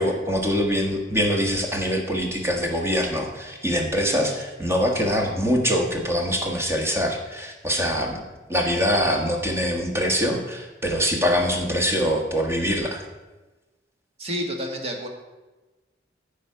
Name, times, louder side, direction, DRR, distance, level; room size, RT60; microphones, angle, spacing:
voice 1, 0.0-8.2 8.5-13.0, equal, 15° right, 1 dB, 1.5 m, -24 dB
voice 2, 14.2-15.1, equal, 35° right, 2 dB, 1.6 m, -29 dB
14.5 x 5.1 x 5.7 m, 1.2 s
head